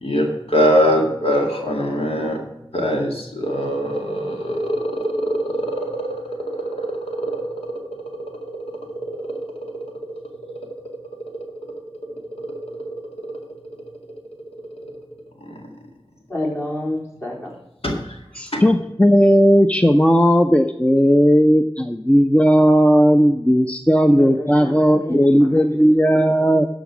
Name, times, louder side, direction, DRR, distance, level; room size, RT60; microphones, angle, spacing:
voice 1, 0.0-2.4 2.7-5.8 7.2-7.3 17.8-17.9 18.5-18.6, equal, 80° left, 0 dB, 2.1 m, -21 dB
voice 2, 16.3-17.5 24.2-25.6 26.0-26.1, left 1 dB, 30° left, -3 dB, 3.9 m, -29 dB
voice 3, 18.3-26.7, equal, 15° left, 7 dB, 0.6 m, -15 dB
12.5 x 5.2 x 6.1 m, 0.88 s
wide cardioid pair, 50°, 10 cm